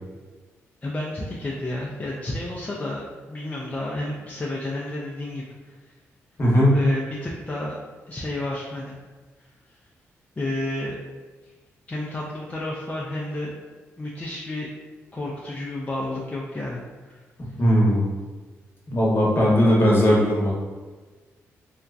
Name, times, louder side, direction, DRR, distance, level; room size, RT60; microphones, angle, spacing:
voice 1, 0.8-5.8 6.7-7.8 8.1-9.0 10.4-11.0 11.4-11.5 11.9-13.5 14.0-14.7 15.1-17.2, left 1 dB, 25° left, -5 dB, 0.5 m, -31 dB
voice 2, 6.4-6.8 17.6-18.1 18.9-20.5, equal, 40° left, -4 dB, 1.0 m, -18 dB
2.8 x 2.3 x 2.4 m, 1.3 s
supercardioid pair, 60°, 6 cm